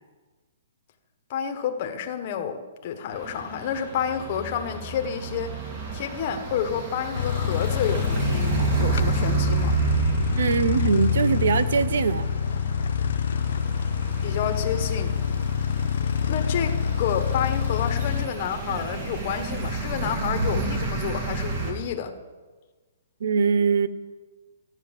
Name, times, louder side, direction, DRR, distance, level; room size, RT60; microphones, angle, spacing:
voice 1, 1.3-5.6 5.9-9.8 14.2-15.1 16.3-22.1, left 8 dB, 35° left, 5 dB, 1.2 m, -30 dB
sound 1, 3.1-21.7, right 5 dB, 40° right, 2.6 m, -31 dB
sound 2, 7.1-18.3, left 8 dB, 65° left, 0.4 m, -26 dB
voice 2, 10.4-12.3 23.2-23.9, right 6 dB, 70° right, 15 dB, 0.9 m, -22 dB
13.5 x 9.1 x 7.3 m, 1.4 s
hypercardioid pair, 165°, 0 cm